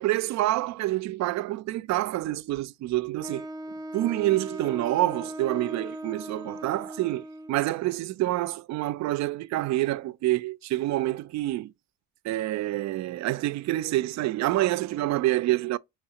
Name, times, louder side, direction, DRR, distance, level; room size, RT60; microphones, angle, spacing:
voice 1, 0.0-3.5 3.9-11.7 12.2-15.8, right 16 dB, 60° right, 0.4 m, -27 dB
Wind instrument woodwind instrument, 3.2-7.7, right 1 dB, 10° right, 0.5 m, -39 dB
4.7 x 3.2 x 2.8 m
hypercardioid pair, 55°, 31 cm